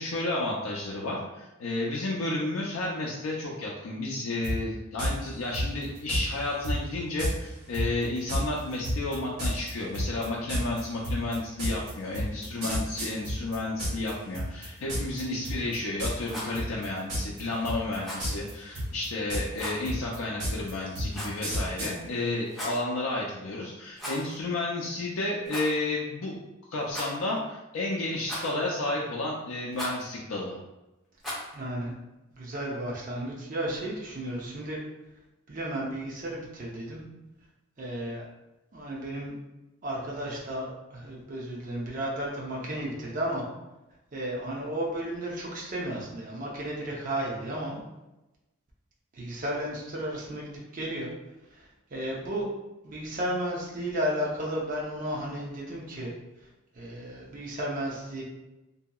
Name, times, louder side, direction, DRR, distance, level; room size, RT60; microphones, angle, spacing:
voice 1, 0.0-26.4 26.7-30.6, left 2 dB, 75° left, -3 dB, 0.4 m, -32 dB
sound 1, 4.4-4.6 5.0-5.1 5.5-6.2 6.6-6.8 7.2-7.3 7.7-14.1 14.3-15.2 15.4-15.7 16.0-16.3 16.5-17.4 17.6-18.5 18.7-21.9, equal, 60° right, 1.4 m, -30 dB
Rattle, 16.2-16.6 18.0-18.3 19.5-19.8 21.1-21.5 22.4-22.8 23.9-24.4 24.6-24.7 25.4-25.7 26.9-27.4 28.3-28.7 29.7-30.0 31.2-31.5, equal, ahead, 0.7 m, -37 dB
voice 2, 31.5-31.9 32.3-34.8 35.5-37.0 37.8-38.2 38.7-39.3 39.8-43.4 44.1-47.8 49.1-51.1 51.6-52.5 52.8-56.1 56.7-58.2, right 1 dB, 40° right, -4 dB, 0.6 m, -33 dB
2.8 x 2.7 x 2.2 m, 0.99 s
head